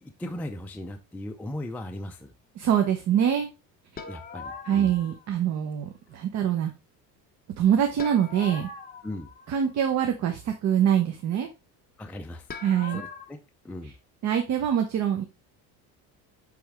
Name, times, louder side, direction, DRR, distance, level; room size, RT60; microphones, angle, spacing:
voice 1, 0.0-2.3 4.1-4.9 9.0-9.3 12.0-12.5 12.9-13.4 13.6-13.9, left 1 dB, 5° left, 0.4 m, -37 dB
voice 2, 2.6-3.5 4.7-6.7 7.6-8.7 9.5-11.5 12.6-13.0 14.2-15.2, right 9 dB, 45° right, 0.9 m, -24 dB
sound 1, 4.0-5.3 8.0-9.9 12.5-13.3, left 4 dB, 25° left, 1.0 m, -41 dB
8.1 x 3.5 x 3.4 m
cardioid pair, 130°, 39 cm